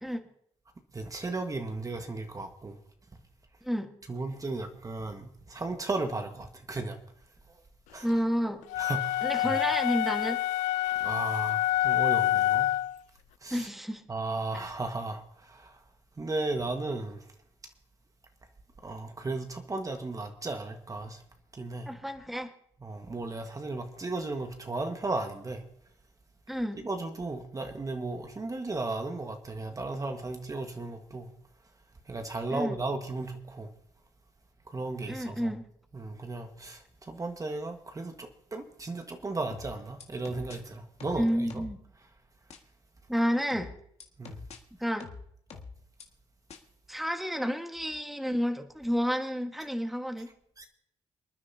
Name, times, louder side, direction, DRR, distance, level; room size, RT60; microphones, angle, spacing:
voice 1, 0.9-2.8 4.1-7.0 7.5-7.6 7.9-8.1 8.8-9.6 11.0-12.7 13.4-13.7 14.1-15.8 16.2-17.3 18.8-21.2 21.5-21.9 22.8-25.6 26.8-31.3 32.1-33.7 34.7-35.6 35.9-41.6 44.2-44.4 50.6-50.7, right 2 dB, 25° right, 1.5 m, -35 dB
voice 2, 8.0-8.6 9.2-10.4 13.5-14.0 21.9-22.5 26.5-26.8 32.5-32.7 35.1-35.6 41.2-41.8 43.1-43.7 44.8-45.1 46.9-50.3, equal, ahead, 1.5 m, -30 dB
sound 1, 8.7-13.0, left 14 dB, 85° left, 0.4 m, -27 dB
sound 2, 39.5-40.6 41.0-41.8 42.5-42.6 43.5-44.6 45.0-46.0 46.5-46.6, left 5 dB, 60° left, 1.8 m, -45 dB
28.5 x 9.6 x 2.8 m
supercardioid pair, 70°, 12 cm